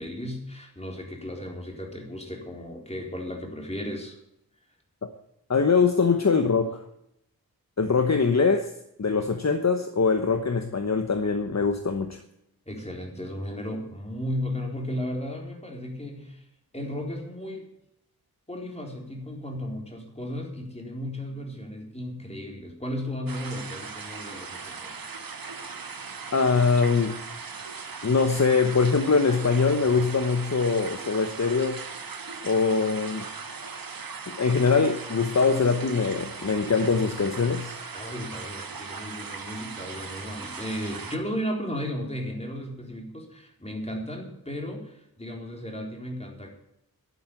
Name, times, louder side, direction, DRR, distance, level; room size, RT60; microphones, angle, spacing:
voice 1, 0.0-4.2 12.7-16.5 16.7-17.7 18.5-24.9 37.9-46.5, equal, 15° left, 1 dB, 4.1 m, -35 dB
voice 2, 5.5-6.8 7.8-8.7 9.0-12.2 26.3-27.1 28.0-31.8 32.4-33.3 34.3-37.7, left 4 dB, 45° left, 7 dB, 1.1 m, -23 dB
sound 1, 23.3-41.2, right 5 dB, 70° right, 1.3 m, -39 dB
11.5 x 9.1 x 8.4 m, 0.79 s
wide cardioid pair, 80°, 36 cm